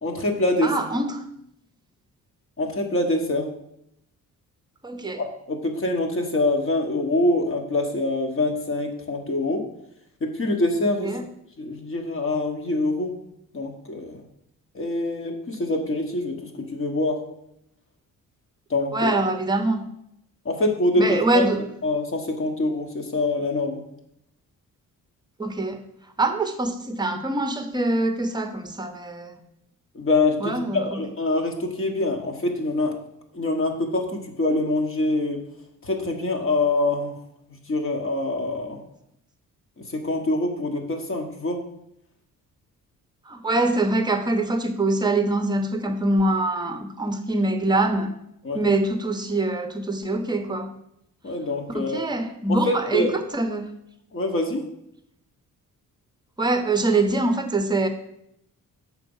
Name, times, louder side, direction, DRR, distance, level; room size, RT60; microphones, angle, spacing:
voice 1, 0.0-0.7 2.6-3.5 5.2-9.6 10.2-11.1 11.6-13.1 13.5-14.2 14.7-17.2 18.7-19.1 20.4-21.5 21.8-23.8 29.9-33.0 33.3-35.4 35.8-37.1 37.7-38.8 39.9-41.6 48.4-48.6 51.2-52.0 52.5-53.1 54.1-54.7, left 2 dB, 40° left, 3 dB, 1.4 m, -25 dB
voice 2, 0.6-1.2 4.8-5.2 11.0-11.3 18.9-19.8 21.0-21.7 25.4-25.8 26.2-29.4 30.4-31.0 43.3-48.1 48.5-50.7 51.7-53.1 53.3-53.7 56.4-57.9, right 2 dB, 15° right, 7 dB, 0.9 m, -24 dB
6.8 x 4.7 x 5.5 m, 0.77 s
cardioid pair, 100°, 33 cm